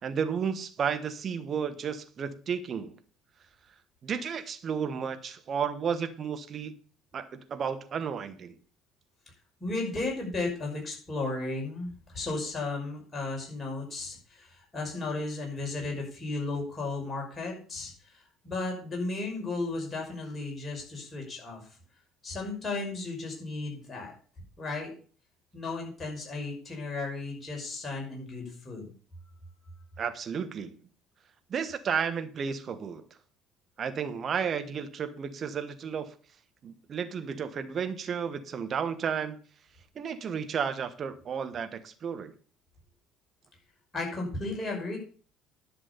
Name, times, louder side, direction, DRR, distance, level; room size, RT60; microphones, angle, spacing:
voice 1, 0.0-2.9 4.0-6.7 7.1-8.5 30.0-30.7 31.5-33.0 33.8-36.1 36.6-39.4 39.9-42.3, right 7 dB, 40° right, 9 dB, 1.3 m, -32 dB
voice 2, 9.6-21.6 22.2-24.1 24.6-24.9 25.5-28.9 43.9-45.0, left 3 dB, 25° left, -1 dB, 5.8 m, -34 dB
11.0 x 6.1 x 7.0 m, 0.42 s
figure-of-eight pair, 55°, 0 cm